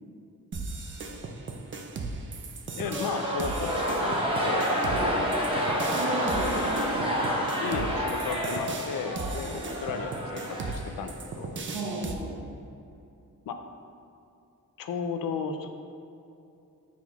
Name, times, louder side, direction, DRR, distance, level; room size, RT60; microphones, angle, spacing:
sound 1, 0.5-12.1, right 3 dB, 35° right, 0.5 m, -37 dB
voice 1, 2.8-4.7 7.6-11.6 13.5-13.6 14.8-15.7, left 5 dB, 85° left, 6 dB, 0.5 m, -34 dB
sound 2, 2.8-11.2, equal, 15° right, 0.9 m, -29 dB
voice 2, 4.9-5.4 5.9-7.5 9.4-9.5 11.7-12.4, right 2 dB, 75° right, -7 dB, 0.9 m, -35 dB
7.0 x 6.1 x 2.4 m, 2.7 s
wide cardioid pair, 155°, 33 cm